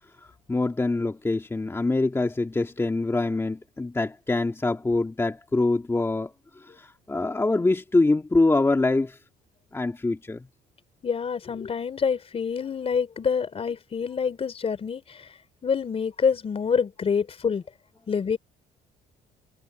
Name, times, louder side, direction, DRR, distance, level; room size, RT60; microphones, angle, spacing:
voice 1, 0.5-9.2 9.7-10.5, left 2 dB, 15° left, 2.1 m, -24 dB
voice 2, 11.0-15.3 15.6-17.6 18.1-18.4, left 6 dB, 35° left, 3.4 m, -26 dB
cardioid pair, 110°, 17 cm